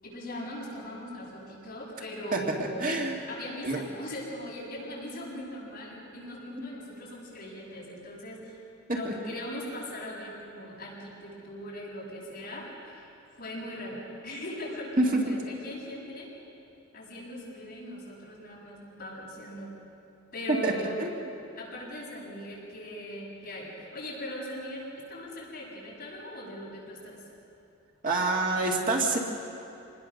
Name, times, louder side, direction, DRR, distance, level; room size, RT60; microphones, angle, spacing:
voice 1, 0.0-3.0 3.3-8.6 8.9-13.1 13.4-16.3 16.9-19.7 20.3-21.0 21.6-27.2, left 1 dB, 40° left, -5 dB, 7.5 m, -40 dB
voice 2, 2.3-3.2 3.6-3.8 8.9-9.1 15.0-15.4 20.5-21.1 28.0-29.2, right 2 dB, 40° right, 0 dB, 2.0 m, -27 dB
26.5 x 20.5 x 6.5 m, 2.7 s
head